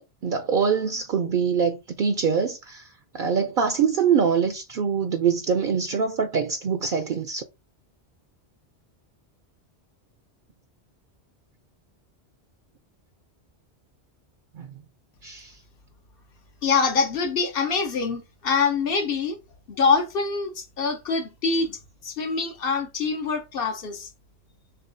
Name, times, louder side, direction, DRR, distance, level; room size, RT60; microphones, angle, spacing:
voice 1, 0.0-2.8 3.1-7.4 14.6-14.7 15.2-15.5, right 6 dB, 60° right, 0.6 m, -24 dB
voice 2, 16.6-19.4 19.7-21.8 22.0-24.1, left 4 dB, 60° left, 0.9 m, -25 dB
6.6 x 2.4 x 2.6 m
omnidirectional pair, 1.1 m